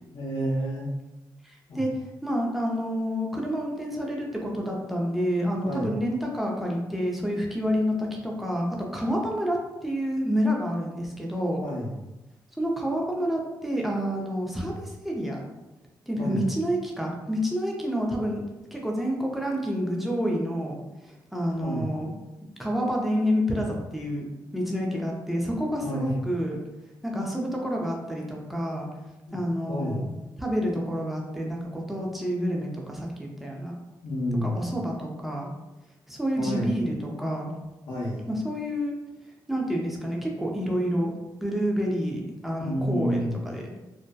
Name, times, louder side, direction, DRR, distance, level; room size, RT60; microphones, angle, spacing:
voice 1, 0.1-0.9 1.7-1.8 5.6-6.0 11.6-11.9 16.2-16.4 21.6-21.9 25.8-26.1 29.3-29.4 29.7-30.1 34.0-34.6 36.4-36.7 37.9-38.3 42.6-43.4, equal, 75° left, -8 dB, 0.7 m, -30 dB
voice 2, 1.4-1.9 2.2-8.7 8.9-11.6 12.6-15.4 16.1-18.4 18.7-20.8 21.0-22.1 22.6-24.2 24.5-26.6 27.0-28.9 29.3-30.0 30.4-33.7 34.4-35.5 36.1-37.5 38.3-38.9 39.5-41.1 41.4-43.7, equal, ahead, -2 dB, 0.5 m, -28 dB
2.6 x 2.1 x 2.2 m, 1.0 s
cardioid pair, 80°, 8 cm